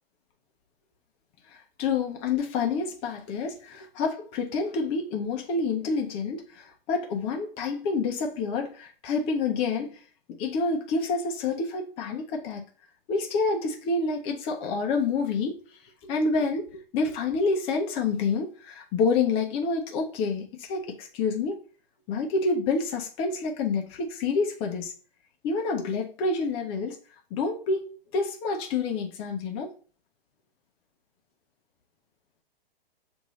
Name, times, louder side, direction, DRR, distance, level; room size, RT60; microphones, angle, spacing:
voice 1, 1.8-9.9 10.3-12.6 13.1-15.5 16.0-21.6 22.1-24.9 25.4-27.0 27.3-29.7, left 4 dB, 20° left, 0.6 m, -28 dB
6.7 x 2.6 x 3.0 m
hypercardioid pair, 145°, 31 cm